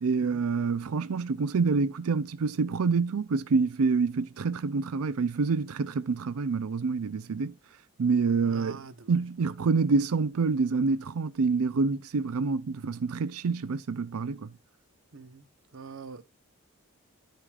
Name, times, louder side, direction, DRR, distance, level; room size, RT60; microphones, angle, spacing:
voice 1, 0.0-7.5 8.0-8.8 9.1-14.5, right 4 dB, 80° right, 0.5 m, -27 dB
voice 2, 8.4-9.2 15.1-15.5 15.7-16.2, right 4 dB, 60° right, 0.9 m, -44 dB
13.5 x 4.9 x 2.4 m
head